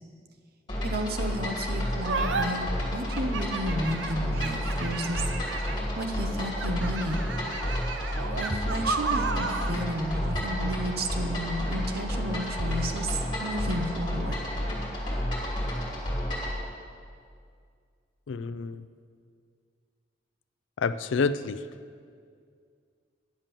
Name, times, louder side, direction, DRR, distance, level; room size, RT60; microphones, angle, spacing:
sound 1, 0.7-16.6, equal, 25° left, 2.5 m, -31 dB
voice 1, 0.8-5.2 5.6-5.7 6.0-7.2 8.3-14.4, equal, 55° right, 5 dB, 0.9 m, -32 dB
sound 2, 2.0-2.5 3.1-5.9 6.5-9.8, right 4 dB, 85° right, 0.7 m, -33 dB
voice 2, 18.3-18.9 20.8-21.6, left 4 dB, 85° left, 14 dB, 0.4 m, -28 dB
10.5 x 7.4 x 6.9 m, 2.2 s
head